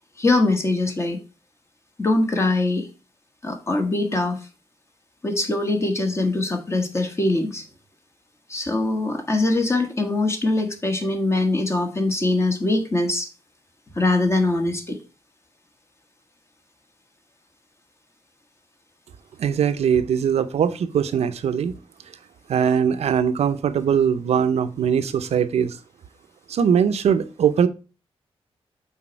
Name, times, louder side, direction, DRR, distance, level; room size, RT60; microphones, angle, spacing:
voice 1, 0.2-1.2 2.0-2.9 3.4-4.4 5.2-7.6 8.5-13.3 13.9-15.0, left 2 dB, 25° left, 1.2 m, -22 dB
voice 2, 19.4-21.7 22.5-25.7 26.5-27.7, right 7 dB, 85° right, 0.6 m, -21 dB
6.2 x 4.1 x 4.3 m
wide cardioid pair, 125°, 11 cm